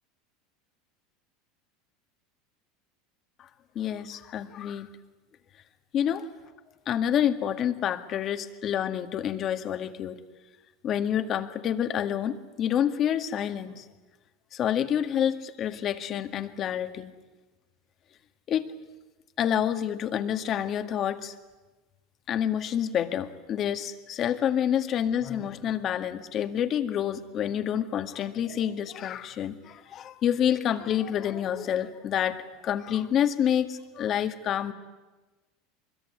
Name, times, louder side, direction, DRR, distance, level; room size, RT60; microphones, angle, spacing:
voice 1, 3.8-4.9 5.9-6.3 6.9-10.2 10.8-13.9 14.5-17.1 18.5-18.7 19.4-21.3 22.3-34.7, left 9 dB, 40° left, 8 dB, 1.9 m, -28 dB
24.0 x 22.5 x 9.9 m, 1.2 s
supercardioid pair, 120°, 0 cm